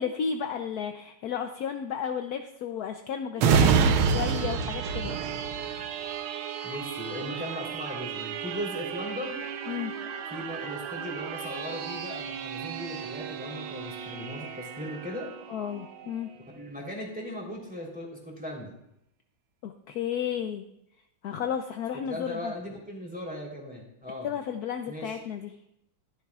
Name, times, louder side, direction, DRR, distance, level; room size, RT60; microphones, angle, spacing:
voice 1, 0.0-5.2 9.7-9.9 15.5-16.3 19.6-20.6 21.2-22.5 24.2-25.5, left 8 dB, 70° left, 6 dB, 0.9 m, -33 dB
sound 1, 3.4-16.7 17.1-17.3, right 6 dB, 90° right, 1.6 m, -30 dB
voice 2, 6.6-9.4 10.3-15.3 16.5-18.7 22.1-24.3 24.9-25.2, equal, 5° right, -3 dB, 3.3 m, -38 dB
14.5 x 13.0 x 2.4 m, 0.80 s
omnidirectional pair, 2.2 m